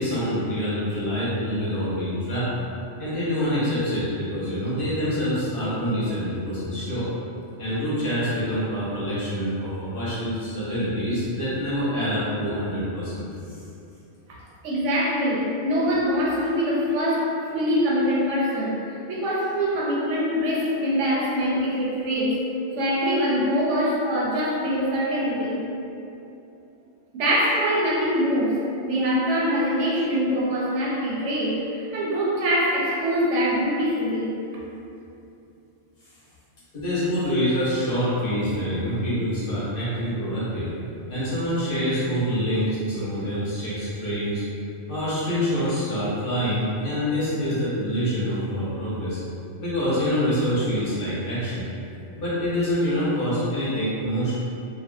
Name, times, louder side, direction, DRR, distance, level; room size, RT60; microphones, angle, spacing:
voice 1, 0.0-2.5 3.0-7.1 7.6-13.6 36.7-40.7 41.1-44.4 44.9-49.2 49.6-51.6 52.2-54.3, equal, 55° left, -10 dB, 0.8 m, -26 dB
voice 2, 14.6-22.4 22.8-25.6 27.1-34.4, equal, 80° right, -6 dB, 0.9 m, -24 dB
2.5 x 2.2 x 2.5 m, 2.7 s
omnidirectional pair, 1.3 m